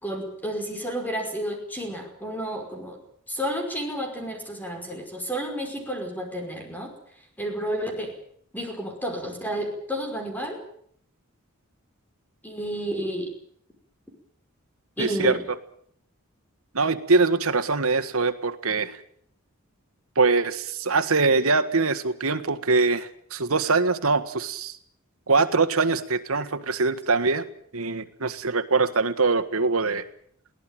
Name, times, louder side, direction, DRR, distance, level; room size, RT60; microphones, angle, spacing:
voice 1, 0.0-3.0 3.3-6.9 7.4-8.1 8.5-10.6 12.4-13.3 15.0-15.4, equal, 10° left, 4 dB, 5.3 m, -31 dB
voice 2, 15.0-15.4 16.7-19.0 20.1-24.7 25.3-27.4 27.7-30.0, right 3 dB, 80° right, 8 dB, 1.6 m, -23 dB
22.5 x 17.5 x 9.1 m, 0.64 s
head